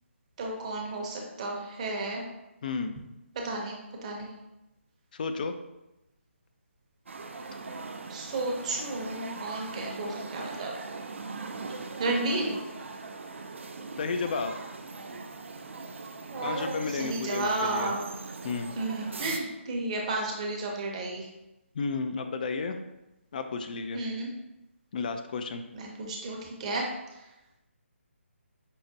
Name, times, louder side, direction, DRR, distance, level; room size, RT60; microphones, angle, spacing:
voice 1, 0.4-2.2 3.4-4.3 8.1-10.7 12.0-12.5 16.3-18.0 18.8-21.3 23.9-24.3 25.7-26.9, right 2 dB, 30° right, 0 dB, 0.7 m, -32 dB
voice 2, 2.6-2.9 5.1-5.5 14.0-14.5 16.4-17.9 18.4-18.7 21.7-22.8 23.3-24.0 24.9-25.6, left 4 dB, 40° left, 7 dB, 0.3 m, -32 dB
sound 1, 7.1-19.4, right 3 dB, 65° right, 0.4 m, -40 dB
5.3 x 2.1 x 2.7 m, 0.95 s
figure-of-eight pair, 150°, 7 cm